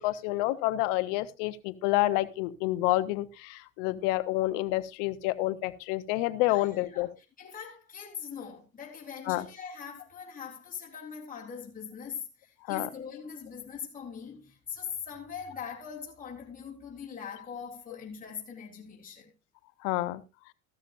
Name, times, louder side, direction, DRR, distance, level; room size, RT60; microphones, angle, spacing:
voice 1, 0.0-7.1 9.3-9.4 12.7-12.9 19.8-20.2, left 17 dB, 60° left, 1.1 m, -28 dB
voice 2, 6.5-7.1 7.4-19.3, left 7 dB, 20° left, 3.5 m, -42 dB
15.0 x 13.0 x 2.5 m
hypercardioid pair, 80°, 41 cm